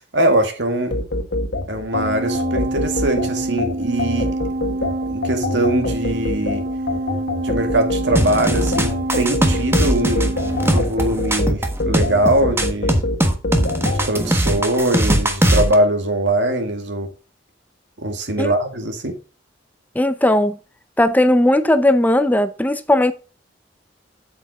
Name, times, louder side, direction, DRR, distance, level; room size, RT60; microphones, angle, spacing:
voice 1, 0.1-1.0 1.7-4.4 5.1-6.6 7.4-10.3 10.7-13.1 13.8-17.1 18.0-19.2, right 1 dB, 80° right, 2.0 m, -21 dB
sound 1, 0.9-14.1, left 2 dB, 65° left, 1.4 m, -25 dB
sound 2, 1.9-10.8, right 2 dB, 55° right, 0.7 m, -26 dB
sound 3, 8.2-15.7, right 1 dB, 15° right, 1.2 m, -20 dB
voice 2, 20.0-20.6 21.0-23.1, left 1 dB, 10° left, 0.5 m, -16 dB
8.1 x 7.5 x 3.7 m
head